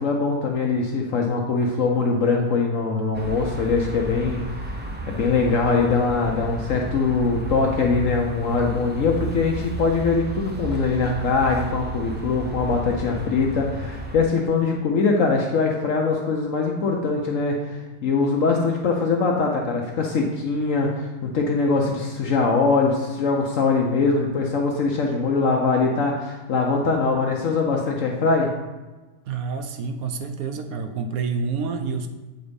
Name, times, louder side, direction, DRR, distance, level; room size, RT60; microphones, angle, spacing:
voice 1, 0.0-4.4 5.1-28.5, left 4 dB, 65° left, 0 dB, 1.1 m, -22 dB
sound 1, 3.1-14.2, right 2 dB, 10° right, 0.5 m, -33 dB
voice 2, 29.2-32.1, right 5 dB, 75° right, 7 dB, 1.1 m, -28 dB
8.0 x 4.1 x 5.1 m, 1.2 s
omnidirectional pair, 1.6 m